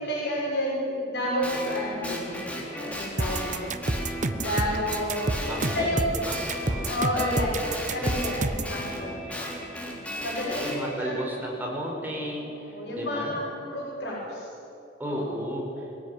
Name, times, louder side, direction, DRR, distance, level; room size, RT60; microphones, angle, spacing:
voice 1, 0.0-2.4 2.7-3.7 4.4-5.3 5.7-6.0 6.9-8.4 8.7-9.2 10.2-11.2 12.7-14.5 15.1-15.2, left 1 dB, 70° left, -5 dB, 6.5 m, -30 dB
Guitar, 1.4-5.9 6.2-10.8, equal, 10° left, 3.7 m, -35 dB
sound 1, 3.2-8.8, right 2 dB, 45° right, 1.0 m, -28 dB
voice 2, 5.5-6.9 8.0-8.2 9.9-10.0 10.5-13.4 15.0-15.9, equal, 10° right, -2 dB, 4.9 m, -34 dB
23.0 x 16.5 x 9.9 m, 2.7 s
head